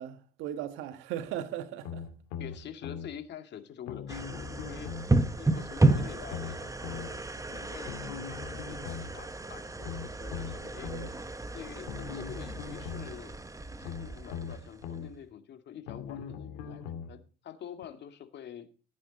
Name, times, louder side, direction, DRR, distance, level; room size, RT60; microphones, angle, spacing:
voice 1, 0.0-2.1 5.3-5.4 10.9-11.1, right 11 dB, 75° right, 1.5 m, -38 dB
sound 1, 1.8-3.1 3.9-5.1 5.8-7.1 7.9-9.1 9.8-11.1 11.9-13.1 13.8-15.1 15.9-17.1 17.8-17.9, left 7 dB, 80° left, 2.2 m, -40 dB
voice 2, 2.4-4.9 5.4-7.2 7.5-11.2 11.5-13.4 13.8-18.7, left 9 dB, 60° left, 2.1 m, -46 dB
sound 2, 4.1-15.2, right 2 dB, 15° right, 1.5 m, -32 dB
14.5 x 9.1 x 4.1 m
hypercardioid pair, 60°, 20 cm